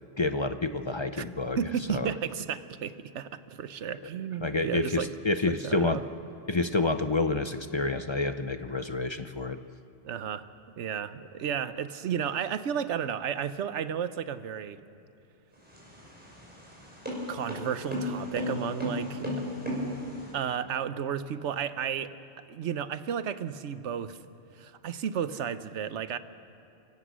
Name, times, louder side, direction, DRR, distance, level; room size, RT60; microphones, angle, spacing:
voice 1, 0.2-1.6 1.9-2.1 4.4-6.0 6.5-9.6, left 3 dB, 35° left, 9 dB, 0.4 m, -28 dB
voice 2, 1.6-5.1 5.5-6.0 10.0-10.5 10.8-14.8 17.3-19.3 20.3-22.1 22.5-24.2 24.5-26.2, right 8 dB, 75° right, 13 dB, 1.1 m, -33 dB
sound 1, 15.6-20.3, left 1 dB, 10° right, 5.5 m, -34 dB
29.0 x 16.5 x 6.3 m, 2.6 s
omnidirectional pair, 1.2 m